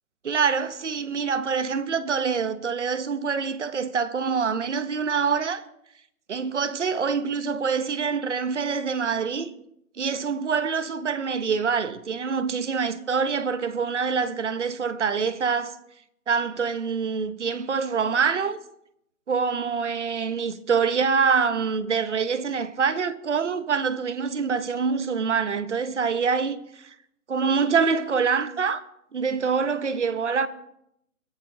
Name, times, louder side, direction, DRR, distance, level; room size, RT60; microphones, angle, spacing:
voice 1, 0.2-5.6 6.3-9.5 10.0-15.7 16.3-18.6 19.3-26.9 27.3-28.8 29.1-30.5, right 5 dB, 55° right, 1.0 m, -25 dB
22.0 x 11.5 x 2.8 m
hypercardioid pair, 170°, 43 cm